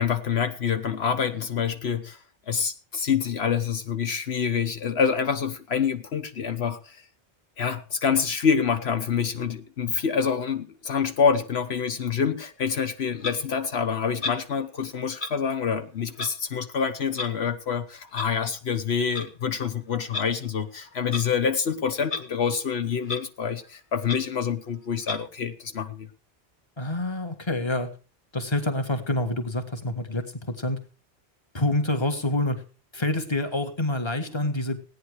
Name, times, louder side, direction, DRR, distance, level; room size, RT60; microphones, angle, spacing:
voice 1, 0.0-2.2 2.5-7.0 7.6-26.1, left 6 dB, 80° left, 8 dB, 1.3 m, -26 dB
Clock, 13.2-13.4 14.2-14.4 15.2-15.3 16.1-16.3 17.1-17.3 18.1-18.3 19.0-19.3 20.1-20.3 21.1-21.3 22.0-22.2 22.6-22.7 23.0-23.2 23.6-23.7 24.0-24.2 25.0-25.2, left 3 dB, 50° left, 1.5 m, -32 dB
voice 2, 26.8-27.9 28.3-30.8 31.5-32.6 32.9-34.8, left 1 dB, 25° left, 6 dB, 1.7 m, -27 dB
17.0 x 9.7 x 4.9 m, 0.37 s
omnidirectional pair, 1.1 m